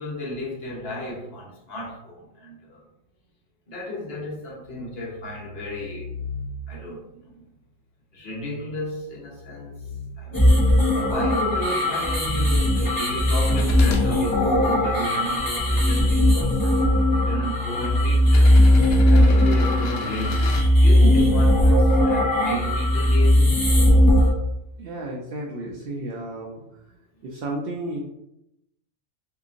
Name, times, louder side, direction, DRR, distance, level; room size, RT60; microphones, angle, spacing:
voice 1, 0.0-2.8 3.7-6.1 6.7-7.4 8.1-16.8 17.2-18.6 19.1-23.6, equal, 55° left, 1.0 m, -33 dB
sound 1, 4.7-7.0 9.1-11.7 12.3-14.8 16.8-18.4, left 3 dB, 40° left, 1.8 m, -38 dB
sound 2, 10.3-24.3, left 1 dB, 25° left, 0.5 m, -18 dB
sound 3, 13.5-14.1 14.8-15.8 16.8-16.9 18.2-20.7 22.5-22.6, left 5 dB, 80° left, 0.9 m, -37 dB
voice 2, 24.8-26.6 27.2-28.0, right 1 dB, 60° right, 0.7 m, -32 dB
3.7 x 2.8 x 2.5 m
omnidirectional pair, 1.3 m